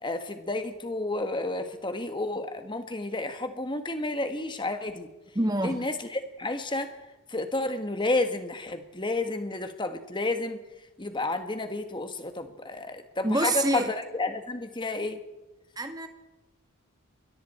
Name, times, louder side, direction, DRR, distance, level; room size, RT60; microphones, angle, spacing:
voice 1, 0.0-5.1 5.6-6.9 7.3-10.6 11.0-15.2, left 2 dB, 20° left, 1.6 m, -31 dB
voice 2, 5.4-5.9 13.2-13.9 15.8-16.1, right 2 dB, 15° right, 1.8 m, -26 dB
28.0 x 22.5 x 4.4 m
head